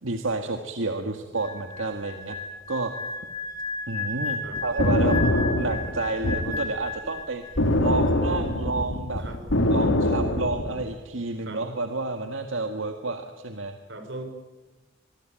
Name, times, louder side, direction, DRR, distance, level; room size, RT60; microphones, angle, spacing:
voice 1, 0.0-2.4 2.7-2.9 3.9-5.2 5.5-7.4 7.8-9.2 9.7-13.7, right 3 dB, 85° right, 6 dB, 1.8 m, -30 dB
sound 1, 1.4-7.7 8.0-8.3, left 3 dB, 20° left, 2.6 m, -34 dB
sound 2, 4.6-6.6 7.6-10.8, left 1 dB, 80° left, 2.6 m, -23 dB
voice 2, 13.9-14.2, right 2 dB, 65° right, 6 dB, 5.3 m, -38 dB
24.5 x 24.0 x 9.0 m, 1.2 s
head